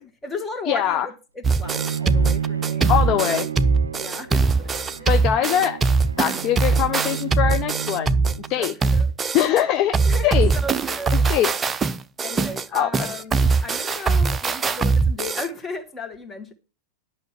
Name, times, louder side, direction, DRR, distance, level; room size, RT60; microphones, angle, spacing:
voice 1, 0.0-3.5 4.0-4.7 5.0-5.1 8.6-9.1 9.8-11.4 12.2-16.5, left 2 dB, 15° left, 1.9 m, -35 dB
voice 2, 0.7-1.1 2.9-3.5 5.1-5.8 6.2-8.2 8.5-8.7 9.3-10.0 10.2-10.5 11.3-11.5 12.7-13.1, left 11 dB, 40° left, 0.6 m, -22 dB
sound 1, 1.4-9.6 9.9-15.5, right 4 dB, 20° right, 0.5 m, -21 dB
Bowed string instrument, 1.6-8.7, right 8 dB, 75° right, 0.5 m, -31 dB
11.0 x 6.1 x 5.9 m
figure-of-eight pair, 90°, 0 cm